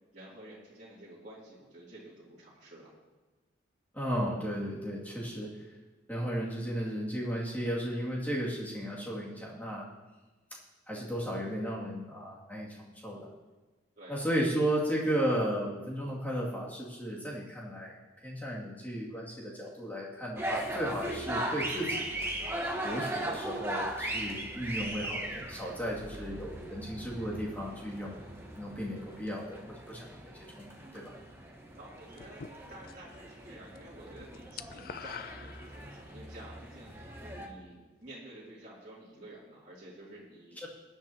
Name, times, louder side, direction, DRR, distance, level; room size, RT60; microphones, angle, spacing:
voice 1, 0.1-2.9 13.9-14.2 31.8-40.6, right 1 dB, 40° right, -8 dB, 2.8 m, -50 dB
voice 2, 3.9-5.6 6.1-9.9 10.9-13.3 14.1-22.0 22.8-28.2 28.6-29.6 29.9-30.1 30.3-31.2 40.6-40.7, equal, 10° left, -5 dB, 2.4 m, -34 dB
sound 1, 20.4-37.5, right 1 dB, 15° right, 1.2 m, -39 dB
sound 2, 32.2-33.2 33.5-33.8 34.1-36.2, left 6 dB, 50° left, 0.4 m, -45 dB
21.5 x 10.0 x 2.9 m, 1.2 s
head